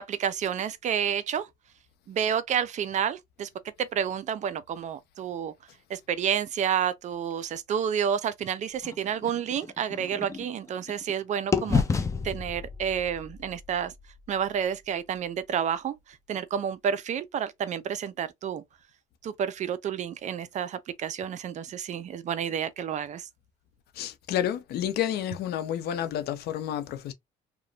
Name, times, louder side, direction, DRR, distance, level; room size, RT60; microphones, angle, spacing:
voice 1, 0.0-1.5 2.1-3.5 3.8-5.5 5.9-13.9 14.3-18.6 19.2-23.3, right 8 dB, 45° right, 0.4 m, -30 dB
sound 1, 8.8-11.1 11.5-15.5, left 5 dB, 20° left, 0.4 m, -32 dB
voice 2, 23.9-27.1, left 10 dB, 70° left, 0.6 m, -30 dB
2.9 x 2.1 x 2.5 m
cardioid pair, 110°, 17 cm